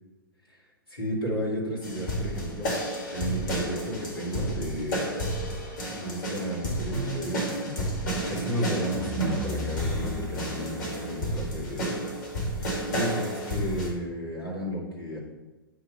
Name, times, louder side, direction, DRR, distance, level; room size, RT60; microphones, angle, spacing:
voice 1, 0.9-2.7 3.1-5.0 5.9-12.0 12.6-15.2, equal, 80° left, -5 dB, 2.3 m, -33 dB
sound 1, 1.8-13.9, right 1 dB, 55° left, 2.0 m, -31 dB
8.3 x 3.0 x 5.3 m, 1.1 s
figure-of-eight pair, 110°, 12 cm